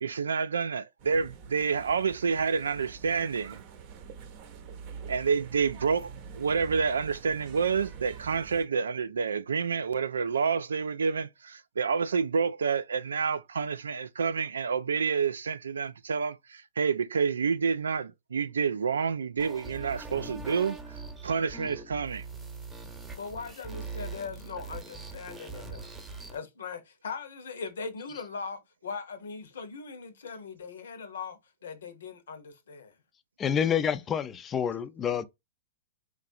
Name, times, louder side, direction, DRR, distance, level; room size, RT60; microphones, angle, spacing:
voice 1, 0.0-3.6 5.1-20.8 21.2-22.3, right 5 dB, 85° right, 0.3 m, -28 dB
sound 1, 1.0-8.7, right 6 dB, 45° right, 0.7 m, -46 dB
sound 2, 19.4-26.4, right 3 dB, 10° right, 0.9 m, -42 dB
voice 2, 23.2-25.9 26.3-32.9, left 5 dB, 80° left, 0.8 m, -40 dB
voice 3, 33.4-35.3, left 8 dB, 25° left, 0.4 m, -28 dB
3.2 x 2.4 x 2.6 m
hypercardioid pair, 115°, 0 cm